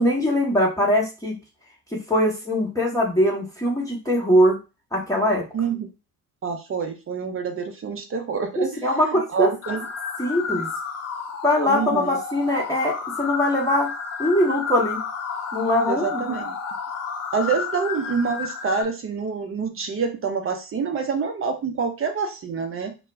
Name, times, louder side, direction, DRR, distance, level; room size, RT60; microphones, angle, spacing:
voice 1, 0.0-1.3 2.1-4.6 4.9-5.4 8.6-9.5 10.2-10.7 11.4-13.9 14.2-15.0 15.5-16.2, left 1 dB, 5° left, -3 dB, 0.9 m, -21 dB
voice 2, 5.5-5.9 6.4-9.9 11.7-12.2 15.9-16.6 17.3-23.0, right 5 dB, 30° right, 7 dB, 0.6 m, -27 dB
sound 1, 9.6-18.8, left 6 dB, 35° left, 0.6 m, -31 dB
2.1 x 2.1 x 3.3 m, 0.29 s
hypercardioid pair, 55°, 46 cm